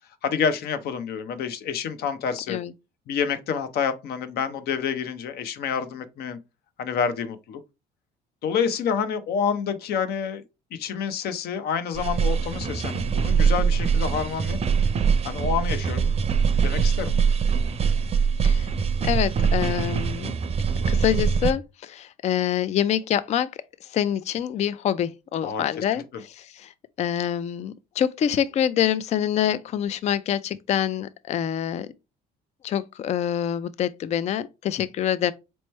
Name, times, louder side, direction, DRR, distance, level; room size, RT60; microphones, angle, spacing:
voice 1, 0.2-2.6 3.1-6.4 6.8-7.6 8.4-10.4 10.7-14.6 15.2-16.1 16.6-17.2 25.4-26.2, left 7 dB, 70° left, 0.7 m, -28 dB
sound 1, 11.9-21.5, right 6 dB, 40° right, 0.6 m, -23 dB
voice 2, 19.0-20.3 20.9-23.5 23.9-26.7 27.0-31.9 32.6-35.3, left 10 dB, 40° left, 0.4 m, -26 dB
4.3 x 3.1 x 3.1 m
cardioid pair, 110°, 17 cm